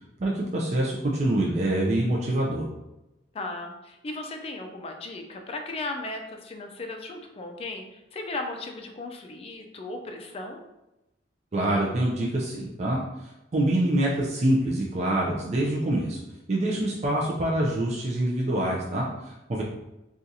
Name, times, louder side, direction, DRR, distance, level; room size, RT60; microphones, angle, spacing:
voice 1, 0.2-2.6 11.5-16.2 16.5-19.6, right 1 dB, 40° right, -4 dB, 0.4 m, -25 dB
voice 2, 3.3-10.6, left 2 dB, 35° left, 4 dB, 0.4 m, -36 dB
2.7 x 2.4 x 3.9 m, 0.94 s
head